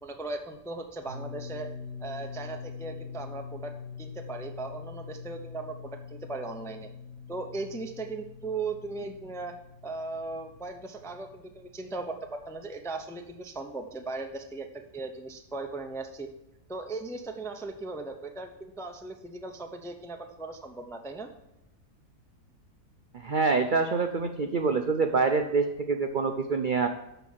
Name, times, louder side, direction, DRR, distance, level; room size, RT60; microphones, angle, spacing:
voice 1, 0.0-1.7 2.0-3.7 4.0-6.9 7.3-9.6 9.8-16.3 16.7-21.3, right 3 dB, 5° left, 4 dB, 0.3 m, -38 dB
sound 1, 1.1-12.8, left 6 dB, 45° right, 2.5 m, -44 dB
voice 2, 23.1-26.9, right 4 dB, 70° right, 6 dB, 0.4 m, -26 dB
12.5 x 4.1 x 7.4 m, 0.90 s
omnidirectional pair, 1.7 m